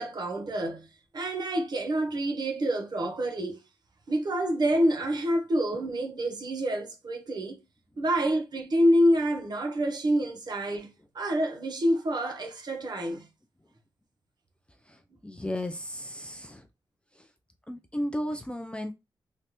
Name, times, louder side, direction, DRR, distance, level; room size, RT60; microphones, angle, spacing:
voice 1, 0.0-3.6 4.1-7.6 8.0-13.3, equal, 50° right, 1.0 m, -27 dB
voice 2, 14.9-16.7 17.1-17.3 17.7-18.9, left 1 dB, 10° left, 0.5 m, -34 dB
3.3 x 2.4 x 2.8 m
cardioid pair, 70°, 9 cm